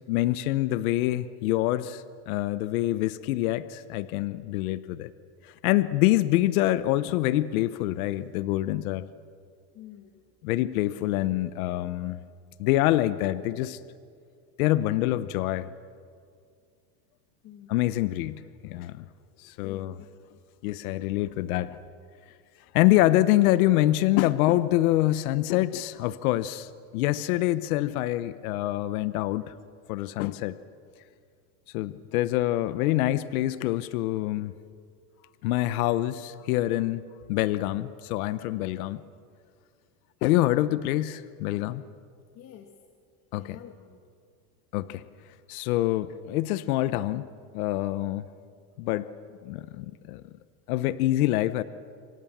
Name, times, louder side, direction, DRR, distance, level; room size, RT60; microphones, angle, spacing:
voice 1, 0.1-5.1 5.4-9.1 10.4-12.2 12.6-13.8 14.6-15.7 17.7-19.0 19.4-19.9 20.6-21.8 22.7-29.5 29.9-30.6 31.7-34.5 35.4-39.0 40.2-41.8 43.3-43.6 44.7-45.0 45.5-47.3 47.5-48.2 48.8-49.1 49.4-50.2 50.7-51.6, left 15 dB, 70° left, 15 dB, 1.0 m, -26 dB
voice 2, 9.7-10.2 17.4-17.7 18.2-18.5 19.6-20.4 42.3-42.7 43.3-44.0, left 11 dB, 35° left, 4 dB, 1.7 m, -48 dB
27.5 x 24.5 x 7.4 m, 2.2 s
supercardioid pair, 160°, 45 cm